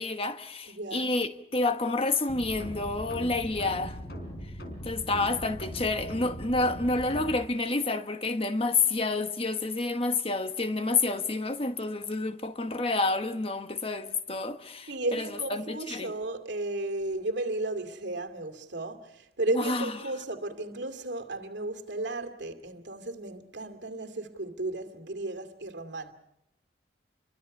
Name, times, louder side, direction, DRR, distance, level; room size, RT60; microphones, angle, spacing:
voice 1, 0.0-4.0 4.8-16.1 19.5-20.0, left 3 dB, 30° left, 1.2 m, -29 dB
voice 2, 0.7-1.1 14.9-26.1, right 2 dB, 75° right, 2.4 m, -34 dB
sound 1, 2.3-7.4, equal, 60° left, 4.4 m, -40 dB
29.0 x 23.5 x 5.5 m
head